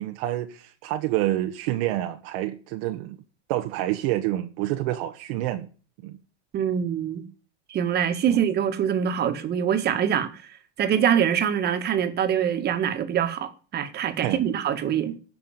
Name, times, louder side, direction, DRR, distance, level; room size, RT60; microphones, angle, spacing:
voice 1, 0.0-3.2 3.5-5.7 6.0-6.2 8.3-8.4 14.2-14.4, right 14 dB, 55° right, 1.3 m, -28 dB
voice 2, 6.5-7.2 7.7-10.4 10.8-15.2, right 9 dB, 30° right, 1.8 m, -24 dB
13.5 x 6.0 x 9.2 m
supercardioid pair, 150°, 34 cm